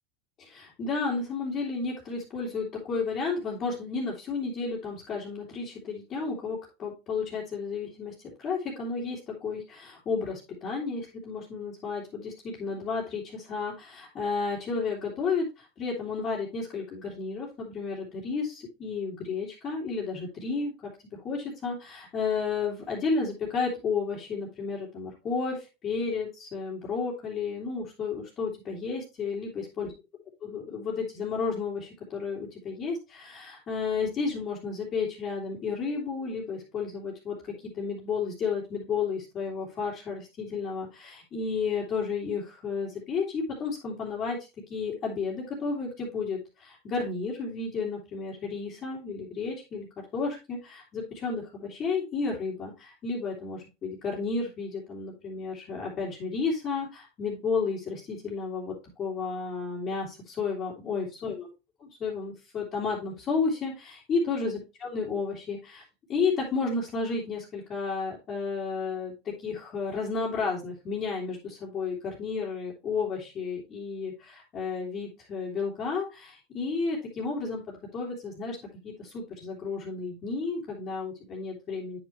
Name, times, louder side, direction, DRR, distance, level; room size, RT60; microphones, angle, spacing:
voice 1, 0.4-8.1 8.4-29.9 30.4-37.4 37.6-44.4 44.7-49.9 50.1-61.5 61.8-65.8 66.1-78.6 78.8-82.0, left 4 dB, 30° left, -6 dB, 2.8 m, -32 dB
9.1 x 6.1 x 3.2 m, 0.26 s
supercardioid pair, 135°, 0 cm